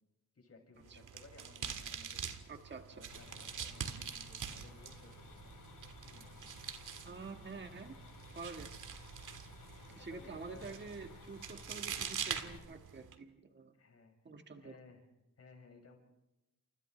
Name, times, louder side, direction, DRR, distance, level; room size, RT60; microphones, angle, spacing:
voice 1, 0.3-2.2 2.9-5.5 6.0-6.4 9.9-10.8 13.7-14.1 14.6-15.1 15.4-16.0, left 4 dB, 45° left, 1 dB, 6.5 m, -59 dB
sound 1, 0.8-13.1, right 7 dB, 65° right, 1.9 m, -45 dB
voice 2, 2.5-3.0 7.0-8.0 8.3-8.7 9.9-13.7 14.2-14.8, right 4 dB, 35° right, 5 dB, 1.6 m, -48 dB
sound 2, 3.1-12.6, left 3 dB, 70° left, 6.7 m, -55 dB
29.5 x 28.0 x 3.3 m, 0.95 s
cardioid pair, 105°, 33 cm